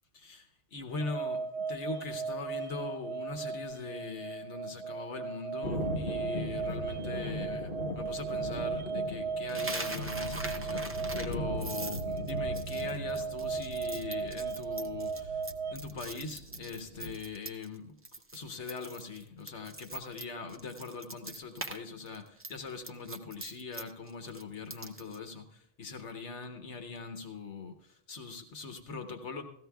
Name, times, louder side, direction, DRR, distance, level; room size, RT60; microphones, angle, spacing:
voice 1, 0.1-15.4 15.7-17.9 18.3-29.4, left 4 dB, 80° left, 6 dB, 1.2 m, -41 dB
sound 1, 1.0-15.7, right 5 dB, 65° right, 0.9 m, -37 dB
Thunder, 5.6-17.1, left 1 dB, 55° left, 1.5 m, -39 dB
Coin (dropping), 9.5-17.8 18.0-18.4 18.7-21.8 22.1-25.2, right 2 dB, 20° right, 0.3 m, -42 dB
17.0 x 14.5 x 2.3 m, 0.77 s
omnidirectional pair, 1.2 m